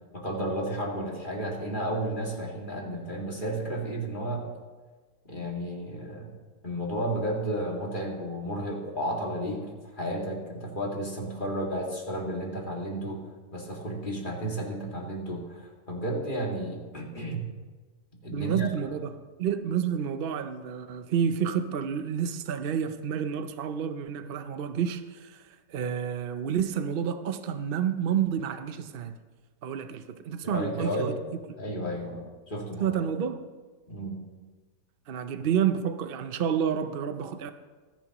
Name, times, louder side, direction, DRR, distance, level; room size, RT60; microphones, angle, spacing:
voice 1, 0.1-4.5 5.3-6.3 6.6-9.7 9.9-13.2 13.5-17.4 18.2-18.7 30.4-31.2 31.6-33.0 33.9-34.2, right 1 dB, 30° left, 2.3 m, -32 dB
voice 2, 18.3-29.1 29.6-31.1 32.8-33.4 35.1-37.5, right 8 dB, 65° right, 0.5 m, -29 dB
25.0 x 10.5 x 3.0 m
omnidirectional pair, 1.7 m